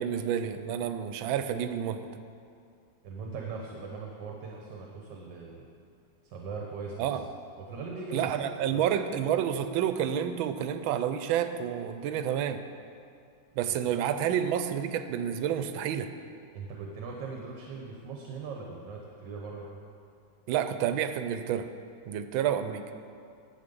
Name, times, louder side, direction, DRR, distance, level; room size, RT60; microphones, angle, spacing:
voice 1, 0.0-2.0 7.0-7.2 8.1-12.6 13.6-16.1 20.5-21.7 22.1-22.8, right 9 dB, 85° right, 10 dB, 1.4 m, -29 dB
voice 2, 3.0-5.7 6.2-7.2 7.6-8.3 8.7-8.8 16.5-19.7, right 4 dB, 65° right, 0 dB, 1.5 m, -40 dB
10.5 x 8.3 x 5.3 m, 2.4 s
omnidirectional pair, 2.1 m